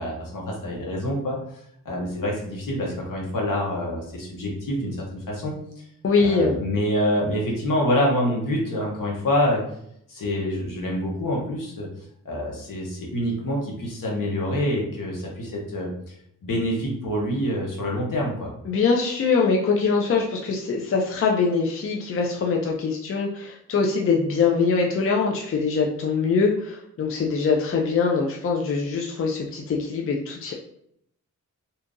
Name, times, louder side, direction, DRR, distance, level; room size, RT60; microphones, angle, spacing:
voice 1, 0.0-1.6 1.8-5.6 6.2-9.6 10.1-11.9 12.2-15.9 16.4-18.5, left 1 dB, 75° left, -2 dB, 1.1 m, -26 dB
voice 2, 6.0-6.6 18.7-30.5, left 4 dB, 40° left, 0 dB, 0.4 m, -23 dB
2.8 x 2.6 x 3.6 m, 0.71 s
wide cardioid pair, 135°, 33 cm